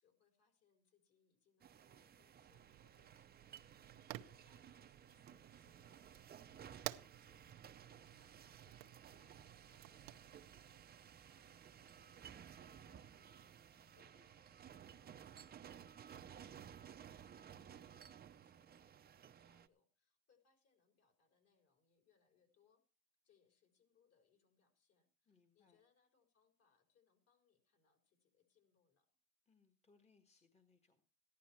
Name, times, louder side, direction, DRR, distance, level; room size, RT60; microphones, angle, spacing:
voice 1, 0.0-7.5 7.9-16.6 17.0-22.8 23.2-29.1, left 6 dB, 50° left, 5 dB, 4.4 m, -78 dB
sound 1, 1.6-19.7, right 8 dB, 30° right, 0.7 m, -58 dB
Fire, 2.5-10.8, right 18 dB, 90° right, 0.8 m, -54 dB
voice 2, 3.9-4.3 13.8-14.3 25.3-25.8 29.4-31.1, left 4 dB, 20° left, 6 dB, 1.5 m, -74 dB
14.5 x 11.0 x 4.5 m, 0.34 s
cardioid pair, 120°, 33 cm